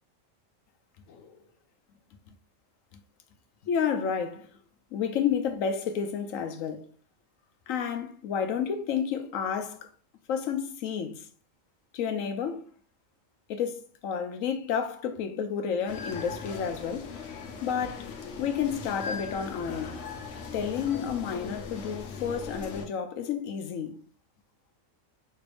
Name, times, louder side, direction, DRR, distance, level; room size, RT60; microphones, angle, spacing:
voice 1, 1.1-1.4 3.6-4.6 4.9-6.9 7.7-9.9 10.3-11.3 11.9-12.7 13.5-17.1 17.6-18.1 18.4-20.0 20.5-24.0, left 7 dB, 85° left, 1.1 m, -31 dB
sound 1, 15.9-22.9, left 5 dB, 65° left, 1.1 m, -39 dB
5.4 x 3.4 x 2.4 m
omnidirectional pair, 1.4 m